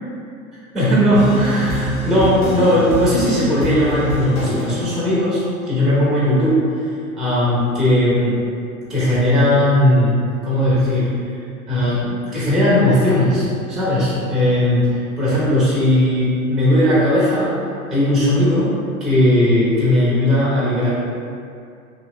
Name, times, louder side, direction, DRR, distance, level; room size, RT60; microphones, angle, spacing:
voice 1, 0.7-6.8 7.2-8.4 8.9-10.1 10.4-11.2 11.7-17.5 17.9-18.7 19.0-20.9, left 1 dB, ahead, -9 dB, 0.3 m, -17 dB
sound 1, 1.1-5.7, equal, 65° left, 1.1 m, -26 dB
3.0 x 2.7 x 2.3 m, 2.4 s
figure-of-eight pair, 85°, 43 cm